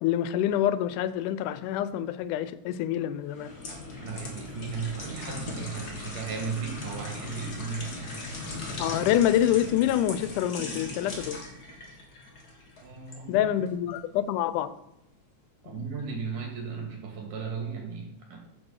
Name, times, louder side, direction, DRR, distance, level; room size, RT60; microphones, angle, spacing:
voice 1, 0.0-3.6 8.8-11.4 13.3-14.7 15.7-15.9, left 11 dB, 90° left, 2.1 m, -26 dB
sound 1, 3.3-13.2 13.7-13.8, left 2 dB, 40° left, 1.6 m, -39 dB
voice 2, 4.0-8.0 12.8-13.4 15.6-18.4, right 5 dB, 85° right, 3.7 m, -35 dB
6.5 x 6.2 x 6.5 m
omnidirectional pair, 3.5 m